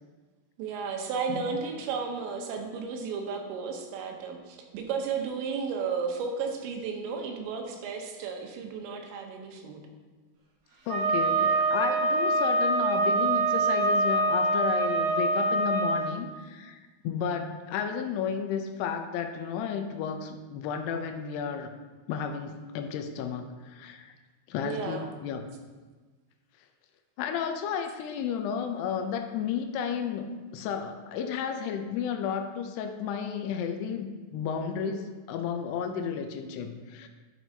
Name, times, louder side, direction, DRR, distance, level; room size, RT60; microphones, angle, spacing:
voice 1, 0.6-9.8 24.6-25.1, right 5 dB, 85° right, 3 dB, 3.1 m, -33 dB
voice 2, 10.9-21.7 22.1-24.1 24.5-25.4 27.2-37.1, left 7 dB, 80° left, 6 dB, 2.5 m, -33 dB
Wind instrument woodwind instrument, 10.9-16.0, right 2 dB, 55° right, 3.6 m, -25 dB
10.5 x 6.1 x 2.7 m, 1.3 s
omnidirectional pair, 5.1 m